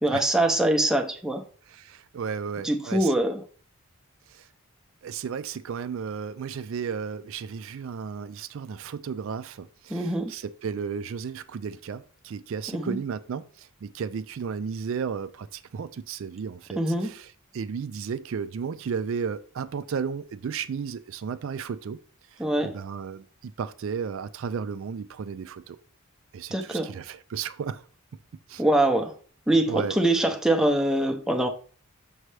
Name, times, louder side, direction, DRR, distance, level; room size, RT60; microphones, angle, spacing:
voice 1, 0.0-1.4 2.6-3.4 9.9-10.3 12.7-13.0 16.8-17.1 22.4-22.8 26.5-26.9 28.6-29.1 29.5-31.5, right 1 dB, 5° right, 0.6 m, -23 dB
voice 2, 1.7-3.1 4.3-4.5 5.0-22.0 22.3-25.8 26.3-27.8 28.5-28.6 29.7-30.0, right 6 dB, 65° right, 0.3 m, -34 dB
6.2 x 5.4 x 3.2 m
head